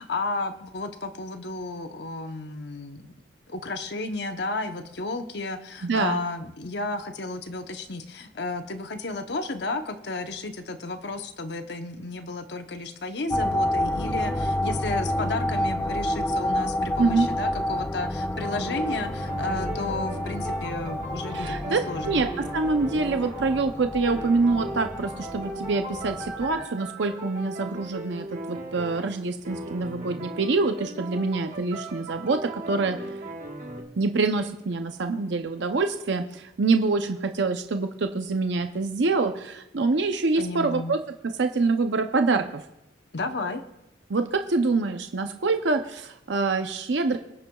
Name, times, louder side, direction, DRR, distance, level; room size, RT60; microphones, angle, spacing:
voice 1, 0.0-3.0 3.5-22.3 40.4-41.0 43.1-43.6, left 3 dB, 65° left, 7 dB, 0.9 m, -33 dB
voice 2, 5.8-6.2 17.0-17.3 21.3-22.3 22.5-33.1 34.0-41.0 41.4-42.6 44.1-47.2, right 3 dB, 70° right, 6 dB, 0.6 m, -25 dB
sound 1, 13.3-26.7, left 1 dB, 10° left, 0.3 m, -29 dB
sound 2, 18.4-23.7 24.0-33.8, right 2 dB, 40° right, 1.4 m, -38 dB
25.0 x 8.9 x 2.3 m, 0.87 s
head